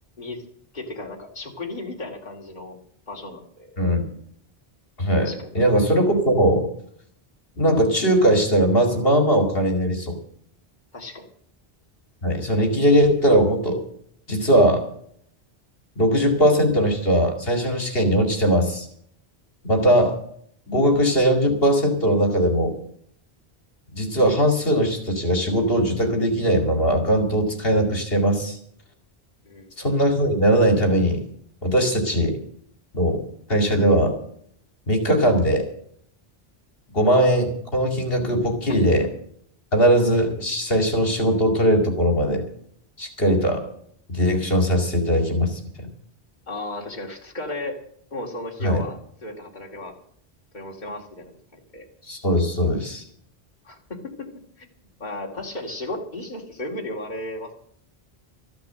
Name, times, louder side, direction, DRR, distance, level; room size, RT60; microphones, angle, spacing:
voice 1, 0.7-2.8 3.1-3.7 5.2-5.5 10.9-11.3 29.4-29.7 46.5-47.8 48.1-49.9 50.5-51.9 53.6-54.3 54.6-54.7 55.0-57.5, left 1 dB, 45° left, -1 dB, 2.5 m, -34 dB
voice 2, 5.0-6.7 7.6-10.2 12.2-13.8 14.3-14.8 16.0-18.9 19.6-20.2 20.7-22.8 23.9-28.6 29.8-31.2 31.6-32.4 32.9-34.2 34.9-35.7 36.9-39.1 39.7-42.4 43.0-43.7 44.1-45.9 48.6-48.8 52.0-53.0, equal, 65° left, 4 dB, 2.6 m, -20 dB
14.0 x 10.5 x 7.4 m, 0.65 s
omnidirectional pair, 1.0 m